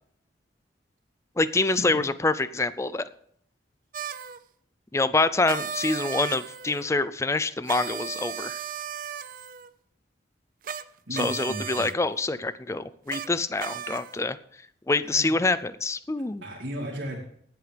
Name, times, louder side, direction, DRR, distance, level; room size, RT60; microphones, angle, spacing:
voice 1, 1.4-3.1 4.9-8.6 11.1-14.4 14.9-16.4, left 3 dB, 15° left, 15 dB, 0.4 m, -26 dB
sound 1, 3.9-4.4 5.4-6.9 7.7-9.7 10.6-10.8 11.1-11.9 13.1-13.3 13.6-14.2, right 7 dB, 45° right, 0.5 m, -35 dB
voice 2, 11.1-11.9 15.0-15.4 16.4-17.2, equal, 75° right, -7 dB, 2.5 m, -35 dB
19.0 x 7.9 x 3.4 m, 0.68 s
head